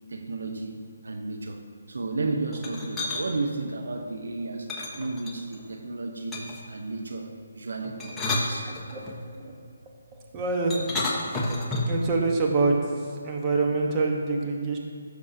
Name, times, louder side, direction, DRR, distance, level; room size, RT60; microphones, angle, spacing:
voice 1, 0.1-1.6 1.9-6.4 6.7-8.8, right 3 dB, 75° right, 4 dB, 0.9 m, -33 dB
sound 1, 2.5-3.2 4.7-5.6 6.3-6.7 7.8-9.2 10.7-12.0, left 2 dB, 10° left, 1.1 m, -30 dB
voice 2, 8.7-9.1 9.4-9.5 10.3-10.8 11.9-12.8 13.2-14.8, right 3 dB, 20° right, -1 dB, 1.2 m, -25 dB
15.0 x 6.5 x 2.8 m, 2.2 s
figure-of-eight pair, 150°, 0 cm